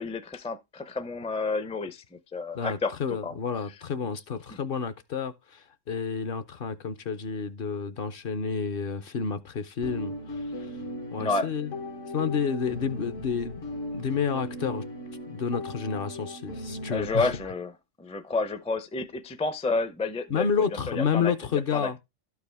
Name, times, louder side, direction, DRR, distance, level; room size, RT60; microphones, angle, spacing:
voice 1, 0.0-2.9 3.2-3.3 11.2-11.5 16.9-17.7 18.0-21.3 21.7-22.0, left 3 dB, 10° left, 0.3 m, -30 dB
voice 2, 2.5-10.7 11.1-11.7 12.1-14.8 15.3-17.3 20.3-22.0, left 6 dB, 55° left, 0.7 m, -30 dB
sound 1, 9.8-17.5, left 1 dB, 80° left, 1.5 m, -37 dB
12.0 x 4.7 x 3.4 m
omnidirectional pair, 1.3 m